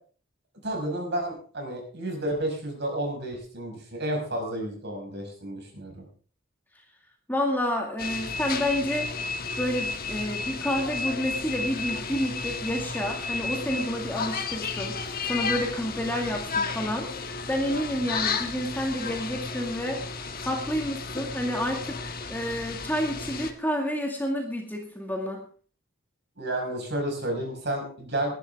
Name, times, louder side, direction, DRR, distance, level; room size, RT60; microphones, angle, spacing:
voice 1, 0.6-6.0 26.4-28.4, right 1 dB, 50° right, 2 dB, 5.5 m, -31 dB
voice 2, 7.3-9.1 9.6-20.0 20.4-25.4, equal, 10° left, 1 dB, 2.1 m, -29 dB
sound 1, 8.0-23.5, left 4 dB, 45° left, 1.4 m, -33 dB
20.0 x 11.5 x 3.6 m, 0.42 s
head